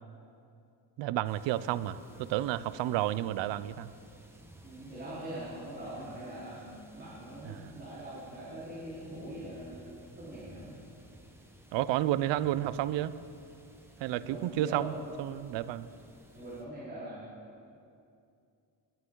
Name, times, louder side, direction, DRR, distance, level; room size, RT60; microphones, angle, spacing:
voice 1, 1.0-3.9 7.4-7.8 11.7-13.1 14.0-14.9 15.2-15.9, right 13 dB, 80° right, 16 dB, 0.5 m, -31 dB
sound 1, 1.2-16.6, right 1 dB, 5° right, 0.9 m, -55 dB
voice 2, 4.6-10.8 14.2-14.9 16.3-17.2, right 1 dB, 25° right, -13 dB, 3.8 m, -43 dB
21.0 x 9.2 x 3.8 m, 2.5 s
cardioid pair, 145°, 43 cm